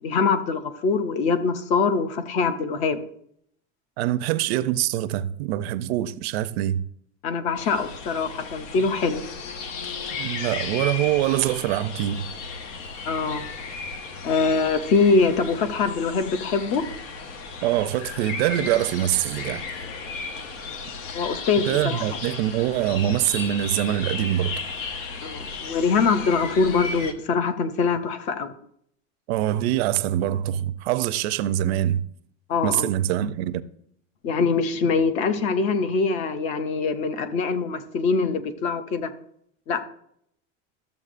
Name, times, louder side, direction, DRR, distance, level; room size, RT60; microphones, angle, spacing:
voice 1, 0.0-3.0 7.2-9.2 13.0-13.5 14.2-16.9 21.1-22.1 25.2-28.5 32.5-32.9 34.2-39.1 39.7-39.8, left 4 dB, 20° left, 0.3 m, -23 dB
voice 2, 4.0-6.8 10.2-12.3 17.6-19.6 21.7-24.5 29.3-32.0 32.6-33.6, right 13 dB, 60° right, 0.5 m, -24 dB
sound 1, 7.5-27.1, left 4 dB, 90° left, 1.2 m, -35 dB
13.0 x 7.0 x 2.5 m
supercardioid pair, 170°, 36 cm